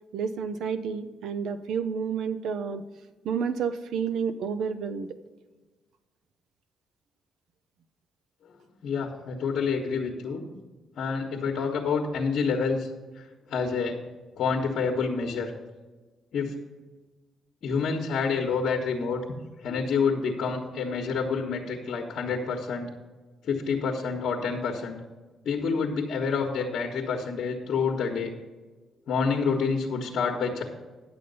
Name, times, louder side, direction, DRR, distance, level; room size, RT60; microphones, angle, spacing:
voice 1, 0.1-2.8 3.2-5.1, right 6 dB, 80° right, 11 dB, 0.7 m, -30 dB
voice 2, 8.8-10.5 11.0-12.9 13.2-14.0 14.4-15.5 16.3-16.5 17.6-22.9 23.4-25.0 25.4-28.3 29.1-30.6, left 5 dB, 65° left, -1 dB, 1.2 m, -28 dB
10.0 x 6.9 x 5.5 m, 1.3 s
cardioid pair, 90°, 0 cm